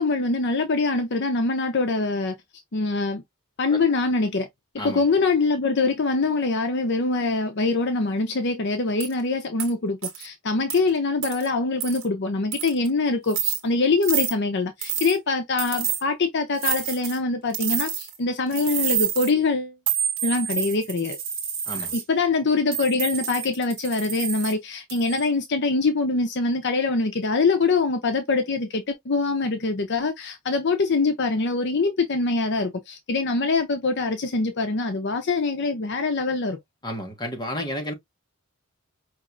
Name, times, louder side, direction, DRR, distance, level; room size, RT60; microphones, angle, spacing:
voice 1, 0.0-2.3 2.7-3.2 3.6-4.5 4.8-19.7 20.2-21.2 21.7-36.6, left 3 dB, 55° left, 0.6 m, -24 dB
sound 1, 9.0-9.1 9.6-9.7 10.0-10.3 10.7-10.8 11.2-11.5 11.8-12.0 12.5-12.9 13.3-13.6 14.0-14.3 14.8-15.2 15.6-16.0 16.6-17.2 17.5-18.2 18.5-19.3 19.9-22.0 22.7-24.5 24.9-25.3, right 8 dB, 65° right, 1.6 m, -28 dB
voice 2, 36.8-37.9, equal, 20° left, 1.3 m, -31 dB
5.2 x 3.0 x 2.4 m
head